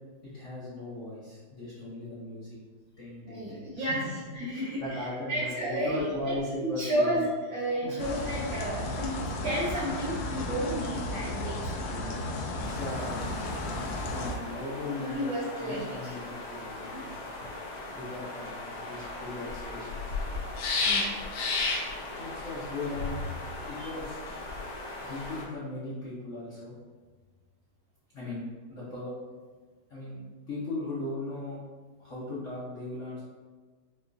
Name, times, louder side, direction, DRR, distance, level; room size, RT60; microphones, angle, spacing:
voice 1, 0.2-2.6 3.0-3.9 4.5-7.2 7.8-8.1 10.4-10.8 11.9-13.2 13.5-13.6 14.0-17.2 17.8-20.1 22.1-23.3 23.7-24.2 25.0-26.8 28.1-29.1 29.9-31.6 32.0-33.2, left 2 dB, 50° left, -8 dB, 0.9 m, -38 dB
voice 2, 3.2-6.3 6.6-9.1 9.4-11.7 12.5-12.7 15.0-16.1 20.8-21.2 23.7-23.9, right 1 dB, 75° right, -8 dB, 1.6 m, -32 dB
sound 1, 8.0-14.4, left 2 dB, 75° left, 1.2 m, -34 dB
sound 2, 12.6-25.4, left 3 dB, 90° left, 1.6 m, -35 dB
5.9 x 2.5 x 2.5 m, 1.4 s
omnidirectional pair, 2.2 m